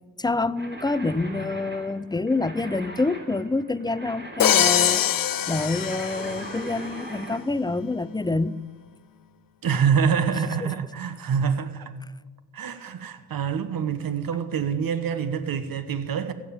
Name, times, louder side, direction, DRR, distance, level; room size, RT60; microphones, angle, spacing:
voice 1, 0.2-5.0 5.5-8.6, left 3 dB, 10° left, 0.4 m, -27 dB
sound 1, 0.6-7.4, right 1 dB, 25° right, 3.0 m, -40 dB
Crash cymbal, 4.4-6.6, left 10 dB, 50° left, 0.7 m, -23 dB
voice 2, 9.6-11.9 12.5-16.3, right 7 dB, 55° right, 1.2 m, -26 dB
15.0 x 7.3 x 8.7 m
cardioid pair, 70°, 43 cm